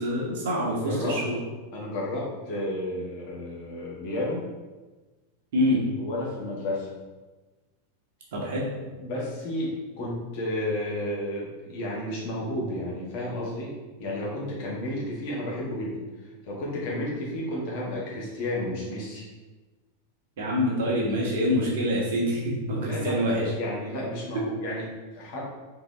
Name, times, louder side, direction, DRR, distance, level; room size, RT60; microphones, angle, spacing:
voice 1, 0.0-1.4 5.5-5.8 8.3-8.6 20.4-23.4, equal, 55° right, -4 dB, 1.3 m, -26 dB
voice 2, 0.7-1.2 1.7-4.4 6.0-6.9 9.0-13.7 14.0-16.0 16.4-19.3 22.7-25.4, left 1 dB, 45° left, -4 dB, 1.4 m, -32 dB
3.8 x 3.8 x 3.1 m, 1.2 s
figure-of-eight pair, 90°, 0 cm